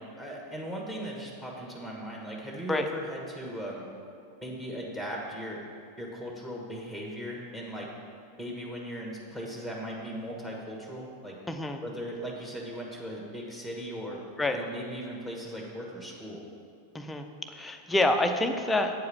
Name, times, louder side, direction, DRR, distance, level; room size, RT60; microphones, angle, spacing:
voice 1, 0.0-3.9 4.4-5.6 6.0-7.9 8.4-11.4 11.8-14.2 14.5-16.4, equal, 10° right, -2 dB, 1.5 m, -38 dB
voice 2, 11.5-11.8 14.4-14.6 16.9-18.9, left 2 dB, 10° left, 5 dB, 0.6 m, -27 dB
8.3 x 4.7 x 7.1 m, 2.4 s
figure-of-eight pair, 90°, 0 cm